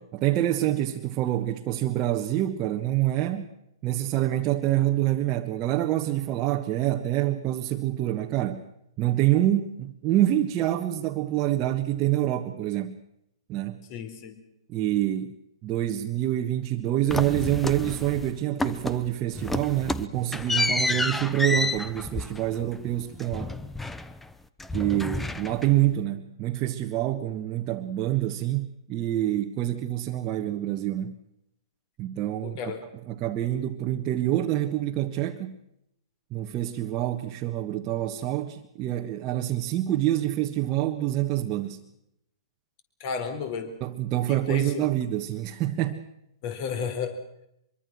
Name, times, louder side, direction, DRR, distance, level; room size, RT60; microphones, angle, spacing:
voice 1, 0.1-3.5 3.8-8.6 9.0-13.0 13.5-13.8 14.7-15.3 15.6-23.5 24.7-31.1 32.0-32.7 33.1-35.6 36.3-41.8 43.8-46.1, right 13 dB, 30° right, 1.5 m, -26 dB
voice 2, 13.9-14.3 32.4-32.8 43.0-43.7 44.3-44.8 46.4-47.1, left 6 dB, 40° left, 4.3 m, -32 dB
sound 1, 17.1-18.3 18.6-19.1 19.4-24.3 24.6-25.9, left 2 dB, 5° left, 0.9 m, -30 dB
24.5 x 23.5 x 6.2 m
hypercardioid pair, 125°, 3 cm